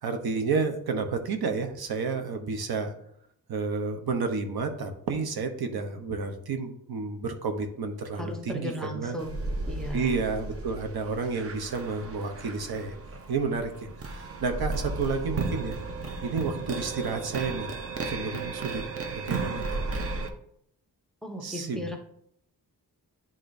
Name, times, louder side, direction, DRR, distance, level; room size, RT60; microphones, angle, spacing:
voice 1, 0.0-2.9 3.5-9.2 9.9-13.0 13.3-15.8 16.2-17.7 18.0-19.6 21.4-22.0, right 4 dB, 80° right, 6 dB, 0.9 m, -31 dB
voice 2, 8.2-10.1 21.2-22.0, equal, ahead, 2 dB, 0.6 m, -36 dB
sound 1, 9.2-20.3, right 3 dB, 40° right, 0.6 m, -34 dB
10.0 x 3.7 x 2.6 m, 0.70 s
wide cardioid pair, 180°, 37 cm